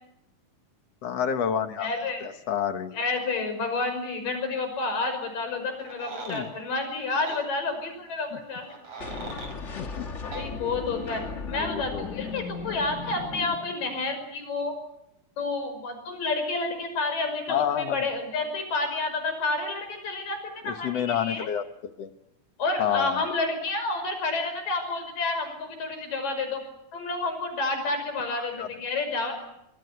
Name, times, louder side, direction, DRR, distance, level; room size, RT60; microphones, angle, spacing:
voice 1, 1.0-1.9 2.2-3.0 6.2-6.5 8.3-8.4 9.8-10.1 11.5-12.1 17.5-18.1 20.6-22.1 22.8-23.2 28.3-28.7, left 9 dB, 60° left, 9 dB, 2.2 m, -29 dB
voice 2, 1.8-2.3 2.9-8.8 10.2-14.8 15.4-20.4 20.6-21.5 22.6-26.6 26.9-29.4, left 3 dB, 80° left, 7 dB, 7.3 m, -30 dB
sound 1, 5.8-6.5 7.3-7.4 8.6-9.6 10.3-10.5, right 4 dB, 50° right, 6.1 m, -39 dB
sound 2, 9.0-14.1, left 4 dB, 35° left, 1.2 m, -37 dB
26.0 x 22.5 x 9.4 m, 0.81 s
omnidirectional pair, 3.8 m